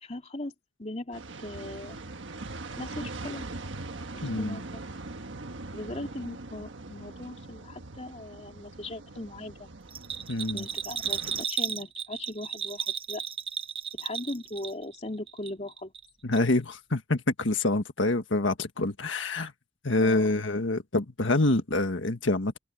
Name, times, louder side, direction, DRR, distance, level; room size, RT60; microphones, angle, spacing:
voice 1, 0.0-0.5 0.8-2.0 2.8-3.4 4.1-4.8 5.7-9.7 10.5-13.2 13.9-15.9 19.2-19.5 20.0-20.3, left 1 dB, 35° left, 2.8 m, -39 dB
sound 1, 1.1-11.4, right 2 dB, 85° right, 1.4 m, -41 dB
voice 2, 4.2-4.6 10.3-10.6 16.2-19.5 19.8-22.6, left 2 dB, 85° left, 1.6 m, -26 dB
Bell, 9.9-15.0 15.3-16.1 16.3-16.4, right 7 dB, 30° right, 0.9 m, -34 dB
open air
head